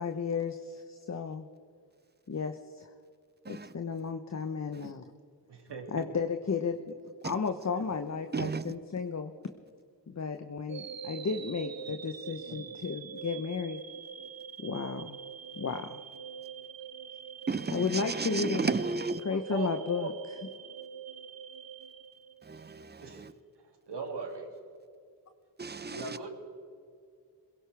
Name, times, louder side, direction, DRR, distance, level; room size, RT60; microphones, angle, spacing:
voice 1, 0.0-1.5 2.3-2.9 3.5-5.0 5.9-6.9 7.2-9.3 10.1-13.8 14.6-15.2 15.6-16.0 17.7-18.7 19.2-20.1, left 5 dB, 40° left, 0.9 m, -33 dB
voice 2, 5.5-6.1 7.7-7.8 12.5-12.7 18.4-18.5 19.5-19.7 20.0-20.1 23.0-23.2 23.9-24.5 25.9-26.3, right 5 dB, 75° right, 2.7 m, -39 dB
voice 3, 8.3-8.7 17.5-19.2 22.4-23.3 25.6-26.2, right 4 dB, 25° right, 0.7 m, -34 dB
sound 1, 10.7-22.8, right 7 dB, 55° right, 0.9 m, -44 dB
22.0 x 17.0 x 3.4 m
cardioid pair, 60°, 41 cm